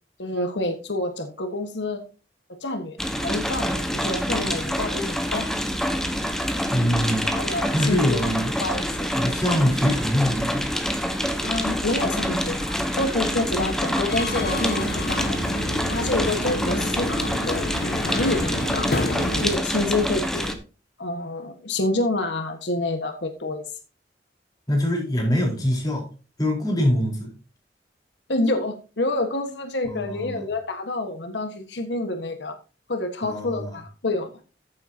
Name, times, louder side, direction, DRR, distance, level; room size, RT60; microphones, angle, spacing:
voice 1, 0.2-2.0 2.5-5.5 7.2-8.3 8.6-9.1 11.4-15.4 15.9-17.6 18.0-19.1 19.4-20.6 21.0-23.6 28.3-32.6 32.9-34.3, left 2 dB, 90° left, 1.5 m, -28 dB
sound 1, 3.0-20.5, equal, 5° left, 1.2 m, -26 dB
voice 2, 6.7-7.4 7.7-8.5 9.1-10.7 24.7-26.0 26.4-27.3 29.9-30.5 33.2-33.8, equal, 20° left, 4.4 m, -24 dB
Subway metro underground, 14.1-19.6, left 1 dB, 65° left, 1.3 m, -29 dB
14.5 x 7.7 x 2.8 m
head